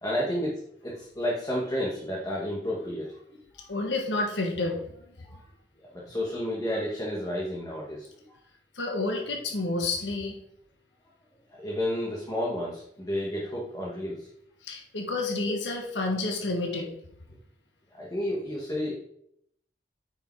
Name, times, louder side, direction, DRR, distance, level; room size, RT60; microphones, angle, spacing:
voice 1, 0.0-3.8 5.2-5.5 5.8-8.1 11.5-14.3 17.9-19.0, left 1 dB, 20° left, -4 dB, 1.4 m, -31 dB
voice 2, 3.7-5.0 8.7-10.4 14.6-16.9, left 2 dB, 85° left, 1 dB, 1.4 m, -29 dB
9.2 x 5.2 x 4.6 m, 0.73 s
head